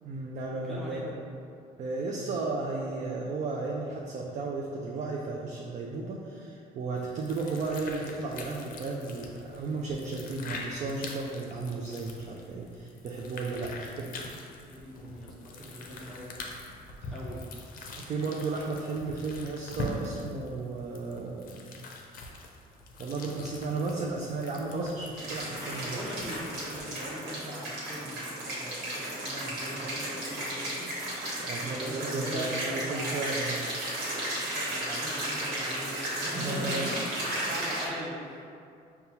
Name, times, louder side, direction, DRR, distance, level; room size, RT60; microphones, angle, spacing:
voice 1, 0.0-1.1 1.8-14.1 17.0-17.1 18.0-21.6 23.0-26.0 31.4-33.6 36.3-37.0 37.4-37.5, right 3 dB, 45° right, -2 dB, 0.4 m, -34 dB
voice 2, 0.5-1.1 14.7-16.3 17.1-17.4 25.8-30.9 31.6-33.3 34.3-38.4, equal, ahead, -7 dB, 0.6 m, -41 dB
sound 1, 7.0-26.9, left 2 dB, 55° left, 0.5 m, -43 dB
sound 2, 25.2-37.9, right 1 dB, 80° right, 1.2 m, -34 dB
5.4 x 2.3 x 2.8 m, 2.5 s
cardioid pair, 110°, 17 cm